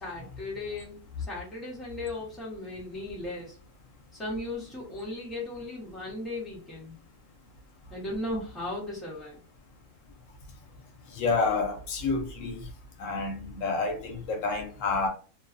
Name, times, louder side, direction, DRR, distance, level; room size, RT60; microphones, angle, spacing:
voice 1, 0.0-3.6 4.1-7.0 7.9-9.4, left 2 dB, ahead, 0.8 m, -36 dB
voice 2, 11.1-12.7 13.0-15.1, left 4 dB, 75° left, 1.0 m, -29 dB
2.6 x 2.2 x 2.4 m
omnidirectional pair, 1.4 m